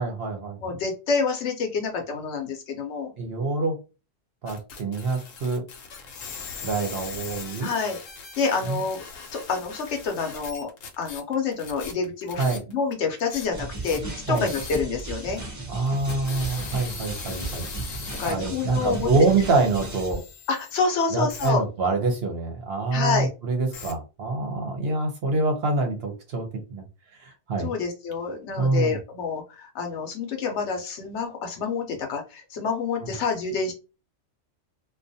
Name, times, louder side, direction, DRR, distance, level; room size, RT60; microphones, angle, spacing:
voice 1, 0.0-0.7 3.2-3.8 4.4-5.6 6.6-7.7 8.6-8.8 12.4-12.6 14.3-14.5 15.7-17.7 18.3-20.2 21.1-26.8 27.2-27.7 28.6-29.0 33.0-33.1, right 3 dB, 60° right, 3 dB, 0.8 m, -25 dB
voice 2, 0.6-3.1 7.6-8.0 8.4-9.0 9.3-10.7 11.0-15.4 18.2-19.1 20.5-21.6 22.9-23.3 27.6-33.7, left 5 dB, 70° left, 3 dB, 0.9 m, -28 dB
sound 1, 4.5-12.9 13.2-15.0 15.4-15.5 15.9-20.8 21.3-21.5 23.7-23.9, left 5 dB, 90° left, 1.1 m, -40 dB
sound 2, 13.5-20.4, right 2 dB, 25° right, 0.3 m, -36 dB
2.5 x 2.3 x 2.6 m, 0.31 s
omnidirectional pair, 1.3 m